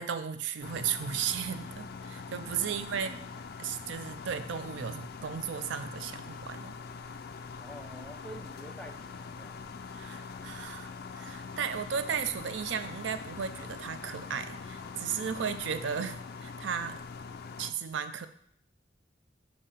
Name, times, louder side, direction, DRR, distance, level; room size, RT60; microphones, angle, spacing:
voice 1, 0.0-3.2 3.6-6.8 9.9-17.0 17.6-18.3, right 7 dB, 75° right, 11 dB, 0.4 m, -35 dB
sound 1, 0.6-17.7, left 5 dB, 55° left, 0.4 m, -43 dB
voice 2, 2.6-3.2 7.6-9.6, right 1 dB, 5° left, 3 dB, 0.5 m, -48 dB
6.7 x 2.7 x 5.6 m, 0.68 s
head